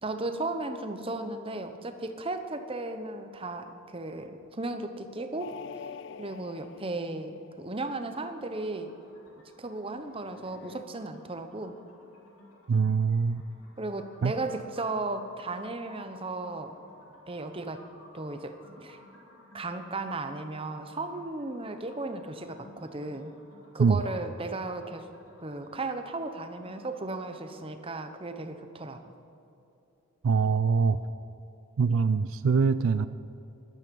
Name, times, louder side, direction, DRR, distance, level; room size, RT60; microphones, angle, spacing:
voice 1, 0.0-5.5 6.2-8.9 9.6-11.8 13.8-16.7 17.3-17.8 18.1-18.5 18.8-19.0 19.5-23.3 23.7-25.1 25.4-29.1, right 2 dB, 25° right, 7 dB, 0.8 m, -35 dB
sound 1, 5.4-8.0 10.2-10.8, left 7 dB, 55° left, 0.3 m, -46 dB
sound 2, 7.8-27.7, left 1 dB, 80° left, 2.8 m, -56 dB
voice 2, 12.7-13.4 14.2-14.3 23.8-24.0 30.2-31.0 31.8-33.1, right 5 dB, 70° right, 13 dB, 0.4 m, -23 dB
14.5 x 12.0 x 5.3 m, 2.9 s
head